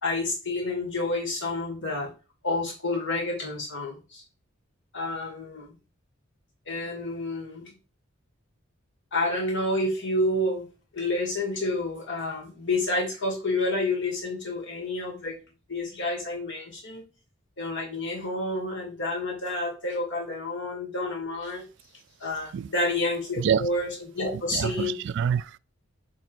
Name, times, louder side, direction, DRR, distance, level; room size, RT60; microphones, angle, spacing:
voice 1, 0.0-2.1 2.4-4.2 4.9-5.7 6.7-7.7 9.1-10.6 10.9-15.4 15.7-17.0 17.6-21.6 22.2-24.9 25.3-25.4, left 2 dB, 65° left, 2.3 m, -29 dB
voice 2, 23.4-23.7 24.3-25.6, right 8 dB, 60° right, 0.3 m, -27 dB
6.3 x 3.7 x 4.5 m
head